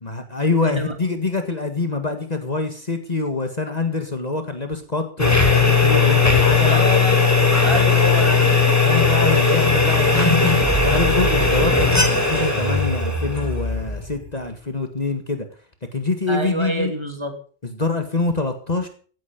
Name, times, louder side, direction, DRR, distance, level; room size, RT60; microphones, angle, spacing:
voice 1, 0.0-6.8 8.8-15.5 15.9-16.9 17.6-18.9, left 3 dB, 35° left, 7 dB, 1.9 m, -25 dB
sound 1, 5.2-14.3, left 4 dB, 15° left, 3.2 m, -17 dB
voice 2, 6.7-7.2 7.6-8.4 16.3-17.3, equal, 25° right, 5 dB, 3.0 m, -26 dB
16.0 x 10.5 x 5.2 m, 0.42 s
omnidirectional pair, 1.2 m